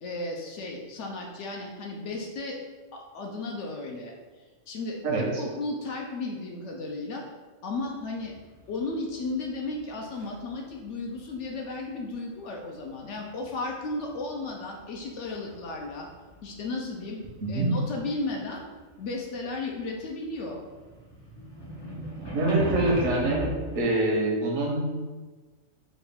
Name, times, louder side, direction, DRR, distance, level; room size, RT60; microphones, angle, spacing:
voice 1, 0.0-2.6 2.9-4.1 4.7-7.2 7.6-8.3 8.7-16.1 16.4-17.2 17.5-18.6 19.0-20.6, left 2 dB, 65° left, 0 dB, 0.8 m, -34 dB
sound 1, 7.7-10.6 10.9-12.1 12.9-14.4 14.6-19.8 20.0-23.8, equal, 40° left, 0.3 m, -37 dB
voice 2, 17.4-17.7 22.3-23.4 23.7-24.9, right 2 dB, 75° right, -1 dB, 1.1 m, -25 dB
3.9 x 2.2 x 3.4 m, 1.3 s
omnidirectional pair, 1.4 m